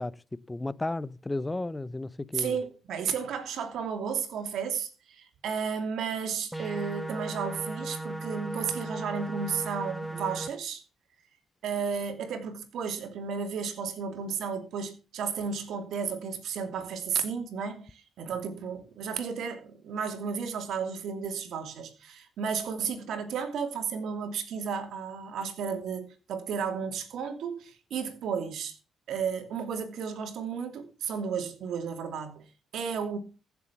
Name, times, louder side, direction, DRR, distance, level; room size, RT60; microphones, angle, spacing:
voice 1, 0.0-2.6, left 2 dB, 15° left, 0.6 m, -34 dB
voice 2, 2.3-10.8 11.6-28.7 29.1-32.4 32.7-33.2, right 6 dB, 75° right, 2.7 m, -33 dB
sound 1, 6.5-10.5, right 2 dB, 5° right, 0.9 m, -36 dB
15.0 x 7.1 x 5.9 m
cardioid pair, 90°, 0 cm